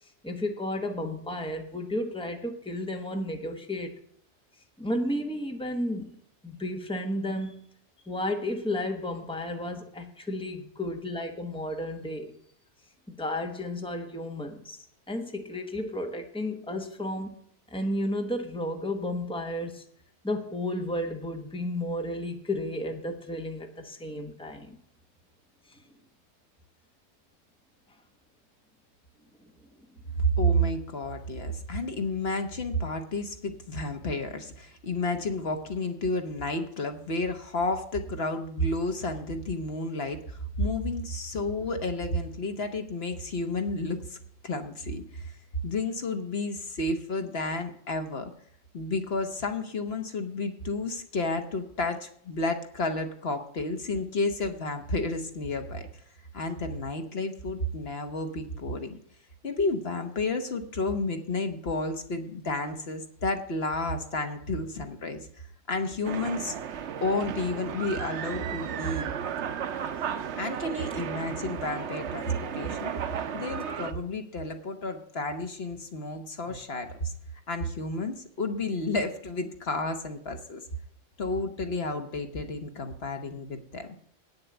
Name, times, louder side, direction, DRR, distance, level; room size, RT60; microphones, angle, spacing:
voice 1, 0.2-3.9 4.8-6.1 6.4-7.7 8.1-12.3 13.1-14.8 15.1-17.4 17.7-19.8 20.2-24.8 76.5-76.6, left 1 dB, 5° left, 4 dB, 1.1 m, -32 dB
voice 2, 30.1-44.2 44.4-45.3 45.6-48.3 48.7-55.9 56.3-59.0 59.4-65.3 65.7-66.5 67.0-69.1 70.4-72.9 73.3-77.1 77.5-80.6 81.2-83.9, left 1 dB, 65° left, 7 dB, 1.3 m, -31 dB
sound 1, 66.0-73.9, right 8 dB, 80° right, 1.1 m, -34 dB
9.2 x 6.9 x 8.2 m, 0.64 s
omnidirectional pair, 1.2 m